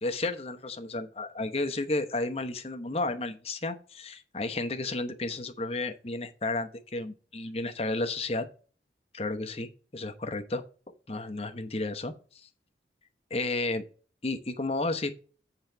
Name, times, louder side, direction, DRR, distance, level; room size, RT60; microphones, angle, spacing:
voice 1, 0.0-8.5 9.1-10.6 11.1-12.5 13.3-13.8 14.2-15.2, left 2 dB, 35° left, 0.9 m, -32 dB
7.9 x 3.9 x 6.8 m
head